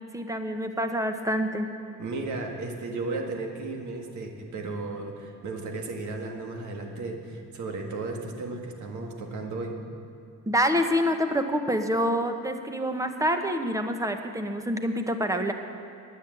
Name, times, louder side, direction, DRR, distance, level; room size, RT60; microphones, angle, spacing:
voice 1, 0.1-1.7 10.5-15.5, equal, 10° right, 6 dB, 1.0 m, -26 dB
voice 2, 2.0-9.8, right 3 dB, 70° right, 2 dB, 1.7 m, -34 dB
9.9 x 9.2 x 7.7 m, 2.5 s
cardioid pair, 90°, 30 cm